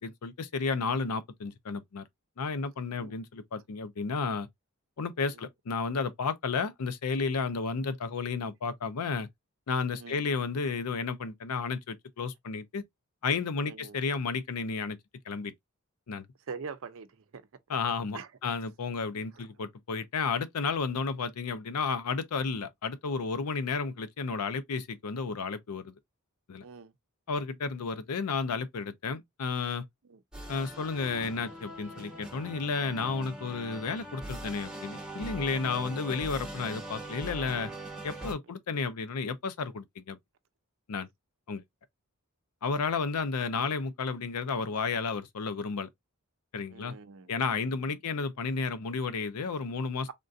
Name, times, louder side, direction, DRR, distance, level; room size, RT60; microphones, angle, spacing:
voice 1, 0.0-2.0 2.4-4.5 5.0-9.3 9.7-12.8 13.2-15.0 15.3-15.5 16.1-16.2 17.7-25.9 26.5-26.6 27.3-29.9 30.5-37.7 38.0-40.2 40.9-41.1 41.5-41.6 42.6-45.9 46.5-46.9 47.3-50.1, left 5 dB, 90° left, 0.5 m, -32 dB
voice 2, 13.6-14.0 16.5-17.1 17.3-17.4 18.1-18.3 26.6-26.9 30.1-30.2 46.7-47.3 47.6-47.7, right 5 dB, 60° right, 0.5 m, -43 dB
sound 1, 30.3-38.3, right 1 dB, 5° right, 1.1 m, -41 dB
3.6 x 2.4 x 2.5 m
head